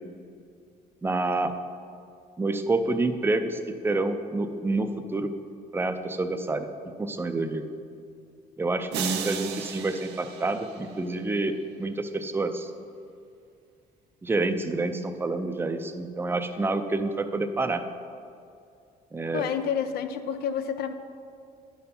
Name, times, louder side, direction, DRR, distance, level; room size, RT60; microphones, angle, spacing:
voice 1, 1.0-1.5 2.4-5.3 5.7-6.7 7.0-7.6 8.6-12.7 14.2-17.8 19.1-19.4, right 2 dB, 15° right, 8 dB, 0.5 m, -28 dB
sound 1, 8.9-11.3, right 8 dB, 80° right, 0.6 m, -35 dB
voice 2, 19.3-20.9, left 8 dB, 65° left, 9 dB, 0.5 m, -29 dB
10.5 x 4.3 x 5.5 m, 2.4 s
cardioid pair, 110°, 17 cm